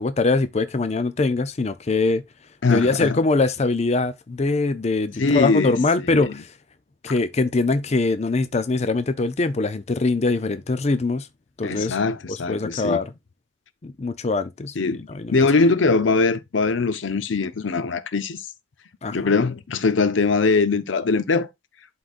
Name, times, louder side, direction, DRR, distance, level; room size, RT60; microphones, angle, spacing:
voice 1, 0.0-2.2 2.7-6.5 7.0-11.3 11.6-12.0 12.3-13.1 13.8-15.3 19.0-19.3, left 3 dB, 35° left, 0.5 m, -23 dB
voice 2, 2.6-3.2 5.2-5.7 6.1-6.3 11.6-13.0 14.8-15.0 15.3-18.4 19.1-21.5, left 4 dB, 80° left, 0.6 m, -21 dB
11.5 x 3.9 x 2.5 m
head